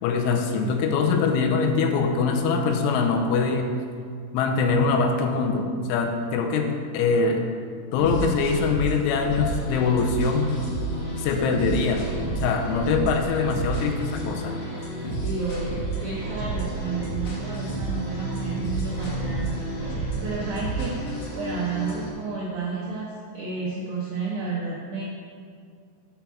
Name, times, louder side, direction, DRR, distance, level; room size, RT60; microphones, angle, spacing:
voice 1, 0.0-3.7 4.3-7.5 7.9-10.5 11.2-12.1 12.4-14.6, left 4 dB, 85° left, 4 dB, 3.1 m, -23 dB
sound 1, 8.0-22.1, right 2 dB, 55° left, 2.5 m, -30 dB
voice 2, 8.0-8.3 15.2-25.0, right 4 dB, 80° right, -5 dB, 2.1 m, -31 dB
7.1 x 5.9 x 7.0 m, 2.2 s
omnidirectional pair, 5.6 m